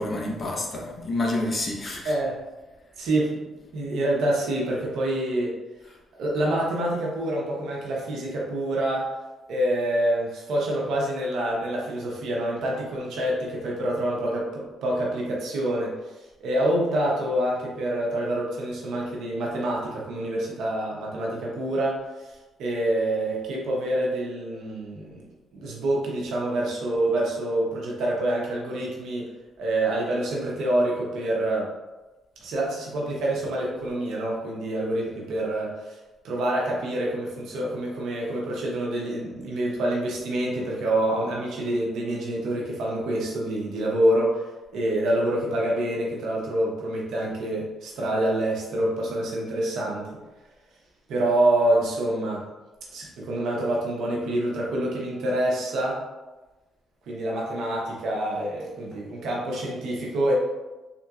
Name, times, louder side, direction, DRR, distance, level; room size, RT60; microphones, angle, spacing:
voice 1, 0.0-2.2 5.9-6.0, left 2 dB, 40° left, -1 dB, 0.7 m, -29 dB
voice 2, 2.0-2.4 3.0-5.5 6.2-9.1 9.5-22.3 22.6-25.3 25.5-29.3 29.6-31.7 32.4-36.0 36.2-44.4 44.7-50.2 51.1-52.4 52.9-56.0 57.1-60.3, right 1 dB, 75° right, -3 dB, 0.8 m, -26 dB
3.6 x 2.6 x 2.4 m, 1.1 s
cardioid pair, 90°, 0 cm